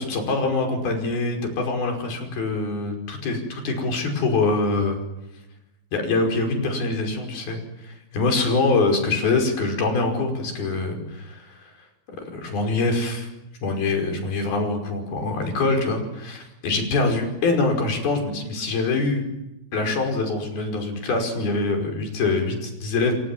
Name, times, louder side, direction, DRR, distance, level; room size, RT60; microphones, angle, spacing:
voice 1, 0.0-5.0 5.9-11.7 12.1-13.3 13.6-19.2 19.7-23.1, left 3 dB, 85° left, 4 dB, 7.2 m, -24 dB
30.0 x 24.0 x 7.6 m, 0.95 s
omnidirectional pair, 4.3 m